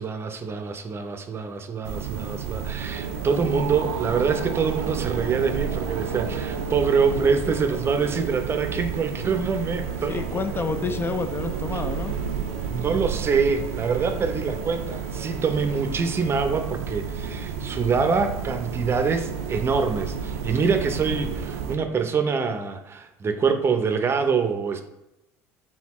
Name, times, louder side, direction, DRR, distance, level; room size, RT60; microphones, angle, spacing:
voice 1, 0.0-10.6 12.7-24.8, right 5 dB, 35° right, 7 dB, 0.6 m, -25 dB
sound 1, 1.8-21.8, right 7 dB, 90° right, 0.3 m, -31 dB
sound 2, 8.4-16.3, right 2 dB, 15° left, 1.0 m, -46 dB
voice 2, 10.1-12.2, left 4 dB, 30° left, 8 dB, 0.4 m, -29 dB
4.1 x 3.8 x 3.0 m, 0.89 s
hypercardioid pair, 75°, 7 cm